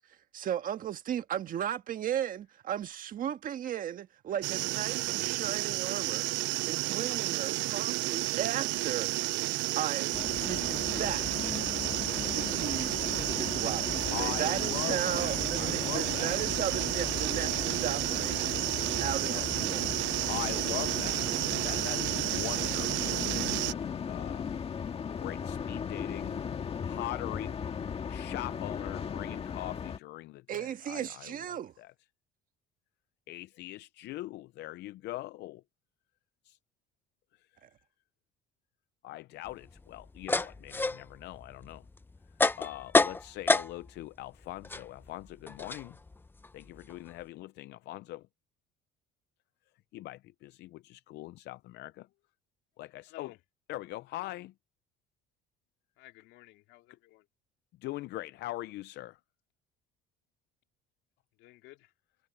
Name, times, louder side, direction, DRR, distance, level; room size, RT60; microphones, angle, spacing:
voice 1, 0.3-6.3 6.7-9.1 9.7-10.2 10.4-11.5 12.3-18.4 19.0-19.8 30.5-31.7 37.6-37.7, right 10 dB, 50° right, 1.6 m, -36 dB
sound 1, 4.4-23.7, right 21 dB, 75° right, 0.4 m, -31 dB
sound 2, 10.1-30.0, left 7 dB, 30° left, 1.8 m, -37 dB
voice 2, 14.1-16.4 19.0-19.5 20.3-23.4 24.0-24.5 25.1-26.4 26.8-27.6 28.1-31.9 33.3-35.6 36.4-36.6 37.3-37.5 39.0-41.9 42.6-46.0 46.5-48.3 49.9-52.1 52.8-53.3 53.7-54.5 57.8-59.2, left 17 dB, 65° left, 0.5 m, -42 dB
sound 3, 39.5-44.1 44.3-47.2, left 3 dB, 10° left, 0.7 m, -30 dB
voice 3, 53.1-53.4 56.0-57.3 61.4-61.9, left 17 dB, 85° left, 3.1 m, -53 dB
cardioid pair, 135°, 19 cm